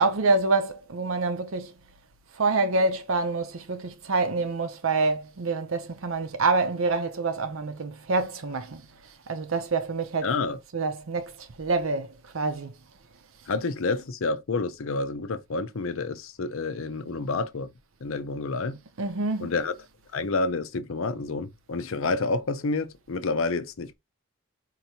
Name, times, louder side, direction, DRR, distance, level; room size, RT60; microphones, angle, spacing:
voice 1, 0.0-1.7 2.4-8.8 9.3-10.3 10.7-11.3 11.6-12.7 19.0-19.5, right 3 dB, 70° right, 0.7 m, -26 dB
voice 2, 10.2-10.6 13.5-17.7 18.0-18.8 19.4-19.7 20.1-23.9, left 3 dB, 70° left, 0.6 m, -29 dB
4.5 x 2.8 x 2.8 m
head